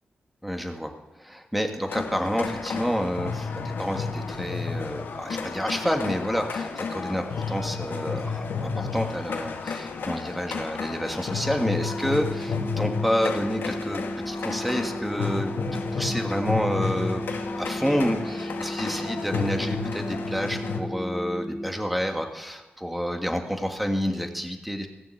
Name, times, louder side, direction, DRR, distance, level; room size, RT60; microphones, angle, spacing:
voice 1, 0.4-0.9 1.2-17.2 17.5-24.9, equal, ahead, 4 dB, 1.7 m, -29 dB
sound 1, 1.9-20.8, left 5 dB, 80° left, 1.4 m, -32 dB
sound 2, 11.7-21.7, equal, 35° left, 2.1 m, -34 dB
16.5 x 6.9 x 7.8 m, 1.1 s
wide cardioid pair, 95°, 4 cm